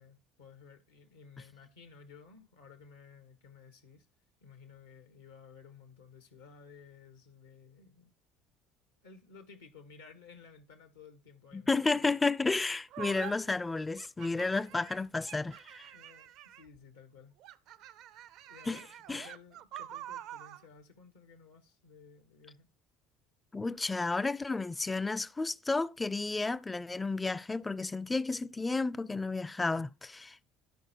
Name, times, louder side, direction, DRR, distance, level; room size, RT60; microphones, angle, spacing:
voice 1, 0.0-4.1 4.4-8.1 9.0-12.1 15.9-17.3 18.4-22.7, left 5 dB, 85° left, 1.2 m, -55 dB
voice 2, 11.5-15.9 18.7-18.8 19.1-19.3 23.5-30.5, left 3 dB, 15° left, 0.4 m, -32 dB
sound 1, 12.9-13.3 14.0-16.8 17.4-20.6, right 12 dB, 60° right, 0.5 m, -47 dB
12.0 x 4.6 x 4.4 m
hypercardioid pair, 65°, 0 cm